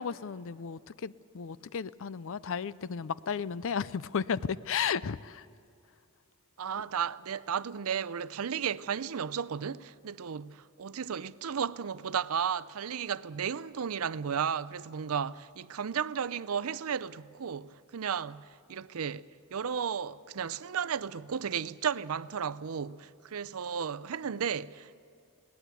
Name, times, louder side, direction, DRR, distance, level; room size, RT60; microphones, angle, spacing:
voice 1, 0.0-5.5, left 6 dB, 60° left, 0.5 m, -34 dB
voice 2, 6.6-24.9, right 7 dB, 70° right, 0.5 m, -34 dB
21.0 x 18.0 x 8.3 m
head